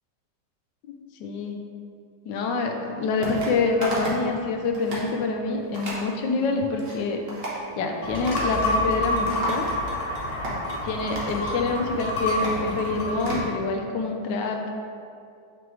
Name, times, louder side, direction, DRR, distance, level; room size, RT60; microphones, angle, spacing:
voice 1, 0.9-1.6 2.2-7.2 7.8-9.7 10.8-14.7, left 3 dB, 85° left, 3 dB, 1.3 m, -26 dB
sound 1, 3.2-3.5 3.8-4.3 4.6-5.1 5.7-6.0 6.6-7.0 7.3-7.6 8.3-8.8 9.0-10.0 10.4-10.6 11.1-11.4 11.9-13.5, right 1 dB, 40° right, 1.2 m, -33 dB
sound 2, 8.0-13.4, left 1 dB, 40° left, 0.9 m, -28 dB
6.8 x 4.7 x 3.1 m, 2.4 s
omnidirectional pair, 1.9 m